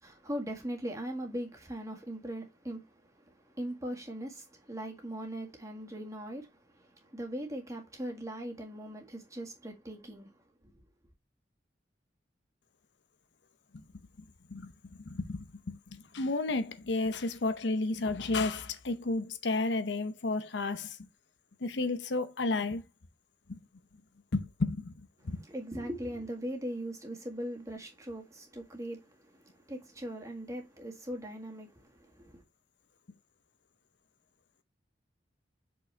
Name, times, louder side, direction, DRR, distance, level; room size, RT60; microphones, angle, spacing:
voice 1, 0.0-10.8 25.3-32.4, right 1 dB, 15° right, 1.8 m, -40 dB
voice 2, 15.0-21.0 21.6-22.8 23.5-23.6 24.3-25.4, left 3 dB, 70° left, 0.8 m, -32 dB
6.4 x 5.4 x 3.4 m
head